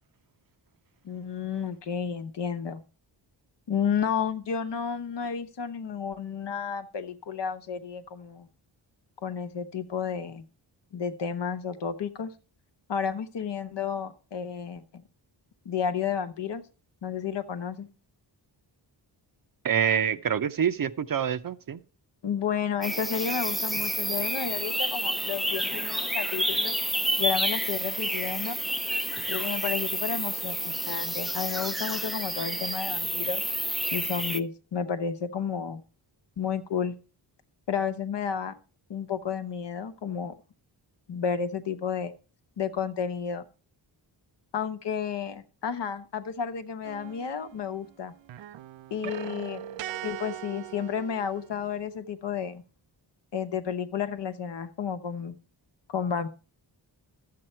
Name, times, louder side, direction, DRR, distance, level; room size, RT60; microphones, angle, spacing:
voice 1, 1.0-2.8 3.7-8.5 9.2-10.4 10.9-12.3 12.9-15.0 15.6-16.6 17.0-17.9 22.2-26.8 27.2-28.6 29.3-33.4 33.9-35.8 36.4-37.0 37.7-38.5 38.9-40.3 41.1-42.1 42.6-43.5 44.5-48.1 48.9-49.7 50.0-52.6 53.3-55.4 55.9-56.3, left 7 dB, 65° left, 1.0 m, -31 dB
voice 2, 19.6-21.8, right 8 dB, 50° right, 0.6 m, -26 dB
sound 1, 22.8-34.4, equal, ahead, 0.4 m, -29 dB
sound 2, 46.8-47.9 48.2-51.8, right 11 dB, 90° right, 0.5 m, -40 dB
12.0 x 7.7 x 4.4 m
wide cardioid pair, 105°, 45 cm